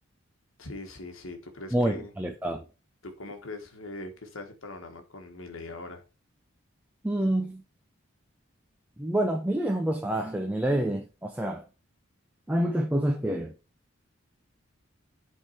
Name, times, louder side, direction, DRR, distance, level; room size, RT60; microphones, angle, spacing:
voice 1, 0.6-2.1 3.0-6.0, left 2 dB, 75° left, 1.4 m, -41 dB
voice 2, 1.7-2.6 7.0-7.6 9.0-11.6 12.5-13.5, right 1 dB, 5° right, 0.5 m, -27 dB
8.2 x 3.7 x 4.3 m
head